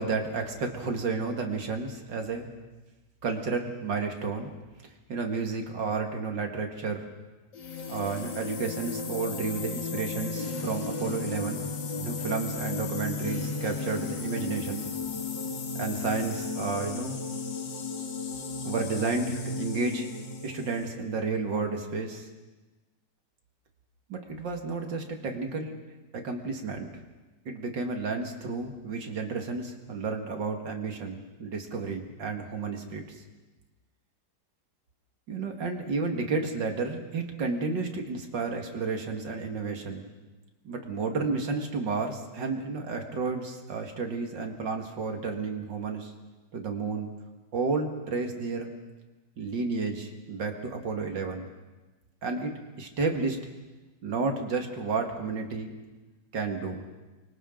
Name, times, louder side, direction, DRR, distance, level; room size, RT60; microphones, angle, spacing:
voice 1, 0.0-2.5 3.2-4.5 5.1-7.1 7.9-11.7 12.0-14.9 15.7-17.2 18.6-20.1 20.4-22.3 24.1-25.8 26.1-26.9 27.5-33.0 35.3-40.1 40.6-46.1 46.5-47.1 47.5-48.7 49.4-51.5 52.2-53.4 54.0-55.7 56.3-56.8, right 4 dB, 80° right, 3 dB, 2.7 m, -31 dB
sound 1, 7.5-21.0, left 4 dB, 80° left, 2.3 m, -34 dB
30.0 x 24.0 x 3.9 m, 1.2 s
omnidirectional pair, 1.9 m